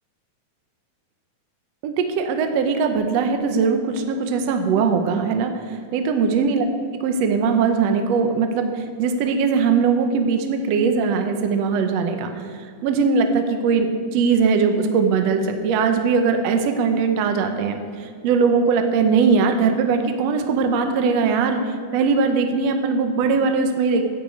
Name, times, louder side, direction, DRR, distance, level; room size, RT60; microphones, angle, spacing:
voice 1, 1.8-6.7 7.0-24.0, right 5 dB, 70° right, 5 dB, 1.9 m, -20 dB
10.5 x 8.0 x 8.3 m, 2.3 s
omnidirectional pair, 3.4 m